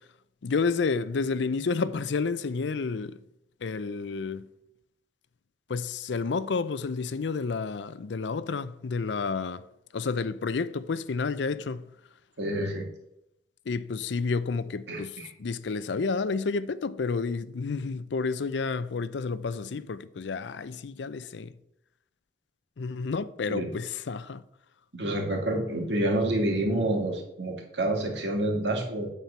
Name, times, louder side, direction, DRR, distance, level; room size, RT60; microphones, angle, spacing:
voice 1, 0.4-3.2 3.6-4.5 5.7-9.6 9.9-11.9 13.7-21.5 22.8-24.4, left 4 dB, 85° left, 0.5 m, -30 dB
voice 2, 12.4-12.9 14.9-15.3 23.5-23.7 24.9-29.1, right 1 dB, 85° right, 2.2 m, -28 dB
9.2 x 4.4 x 6.9 m
head